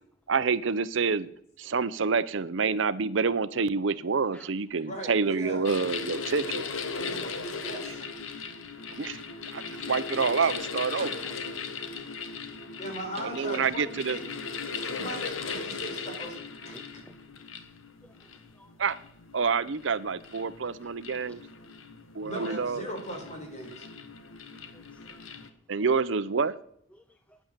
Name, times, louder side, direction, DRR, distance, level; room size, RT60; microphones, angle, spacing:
voice 1, 0.3-1.3 1.6-6.6 9.0-9.2 9.5-9.6 9.9-11.2 13.2-14.2 18.8-19.0 19.3-21.4 22.1-22.8 25.7-26.6, right 5 dB, 70° right, 15 dB, 0.6 m, -27 dB
voice 2, 4.8-5.6 6.9-8.0 12.8-14.3 14.8-17.0 22.2-23.9, right 1 dB, 35° left, 3 dB, 4.2 m, -39 dB
sound 1, 5.7-25.5, left 5 dB, 85° left, 1.4 m, -38 dB
sound 2, 6.1-6.7 7.1-8.1 8.9-9.0 10.5-10.6 11.0-11.8 13.2-14.0 15.1-15.2, right 3 dB, 30° right, 2.1 m, -50 dB
voice 3, 24.7-25.5 26.9-27.4, left 1 dB, 5° left, 9 dB, 0.5 m, -55 dB
11.0 x 10.0 x 7.4 m, 0.71 s
head